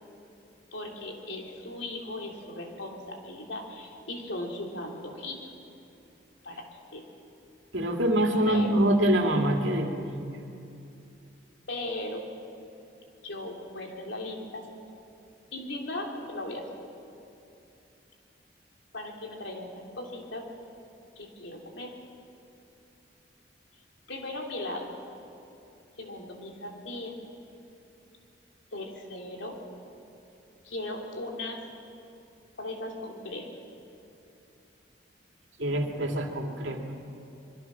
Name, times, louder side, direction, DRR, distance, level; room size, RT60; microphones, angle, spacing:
voice 1, 0.7-5.5 6.4-7.0 8.5-8.8 11.7-12.3 13.2-14.6 15.5-16.8 18.9-20.5 21.1-22.0 24.1-24.9 26.0-27.2 28.7-29.6 30.6-31.6 32.6-33.6, left 1 dB, 80° left, 1 dB, 3.2 m, -37 dB
voice 2, 7.7-10.3 35.6-36.8, right 1 dB, 90° right, 2 dB, 2.6 m, -25 dB
25.5 x 22.5 x 6.1 m, 2.7 s
head